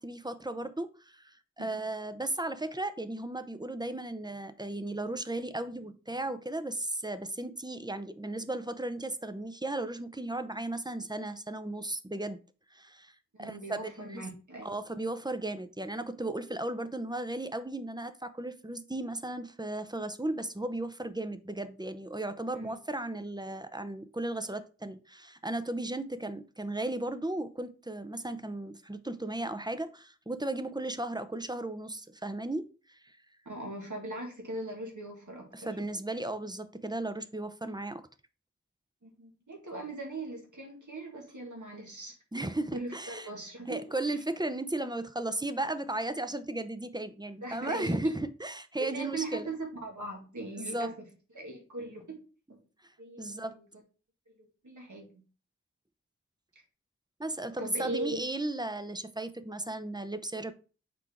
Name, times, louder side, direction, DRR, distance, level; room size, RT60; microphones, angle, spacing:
voice 1, 0.0-12.4 12.7-14.3 14.6-33.1 35.5-38.0 42.3-43.3 43.7-49.5 50.6-50.9 53.2-53.6 57.2-60.5, right 2 dB, 15° right, 0.6 m, -35 dB
voice 2, 1.6-1.9 13.4-14.7 22.5-22.8 33.5-35.8 39.0-44.2 47.4-48.2 48.8-50.9 51.3-52.2 52.5-52.6 53.0-53.6 54.4-55.2 57.6-58.2, right 2 dB, 85° right, 2.0 m, -40 dB
6.1 x 4.5 x 3.6 m
wide cardioid pair, 40°, 29 cm